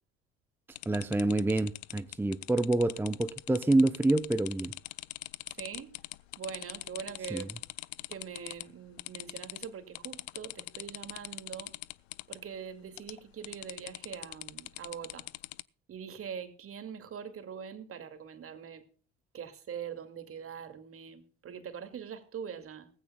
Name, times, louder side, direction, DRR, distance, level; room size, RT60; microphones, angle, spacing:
sound 1, 0.8-8.7 9.0-9.7 10.0-12.4 13.0-13.2 13.4-15.6, left 19 dB, 80° left, 0.5 m, -42 dB
voice 1, 0.9-4.7 7.3-7.5, right 2 dB, 5° right, 10 dB, 0.7 m, -27 dB
voice 2, 5.6-6.0 6.4-7.6 8.1-11.7 12.3-15.3 15.9-18.9 19.3-22.9, right 7 dB, 45° right, 9 dB, 2.3 m, -43 dB
18.0 x 15.5 x 2.3 m, 0.40 s
hypercardioid pair, 60°, 32 cm